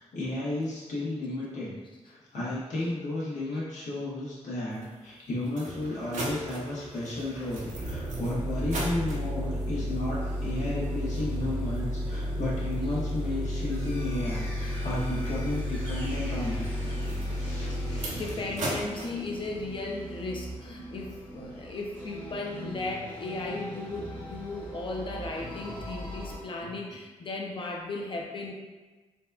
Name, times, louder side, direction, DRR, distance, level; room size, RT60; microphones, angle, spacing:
voice 1, 0.0-1.8 2.0-16.7 17.2-18.4 25.5-25.8 26.6-26.7, left 1 dB, 75° left, -7 dB, 1.2 m, -33 dB
sound 1, 4.8-4.9 5.5-19.1, equal, 75° right, 0.8 m, -32 dB
sound 2, 10.2-26.4, equal, 15° left, 0.9 m, -43 dB
voice 2, 17.8-28.5, left 2 dB, 40° left, 0 dB, 0.6 m, -36 dB
4.0 x 2.3 x 2.3 m, 1.2 s
cardioid pair, 65°, 13 cm